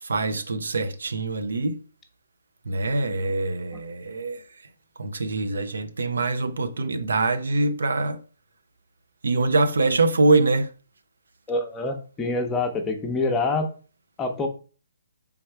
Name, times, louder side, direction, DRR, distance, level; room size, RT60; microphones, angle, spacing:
voice 1, 0.0-1.8 2.6-4.6 5.0-8.2 9.2-10.7, right 3 dB, 85° right, 0.5 m, -24 dB
voice 2, 11.5-13.7 14.2-14.5, left 3 dB, 10° left, 0.6 m, -26 dB
3.5 x 3.2 x 4.5 m
hypercardioid pair, 155°, 0 cm